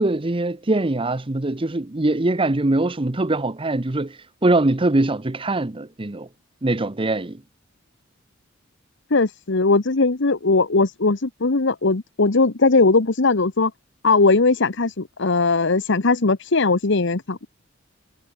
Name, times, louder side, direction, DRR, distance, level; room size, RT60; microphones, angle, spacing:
voice 1, 0.0-6.3 6.6-7.4, right 2 dB, 25° right, 0.9 m, -22 dB
voice 2, 9.1-13.7 14.0-17.5, left 3 dB, 60° left, 1.1 m, -19 dB
head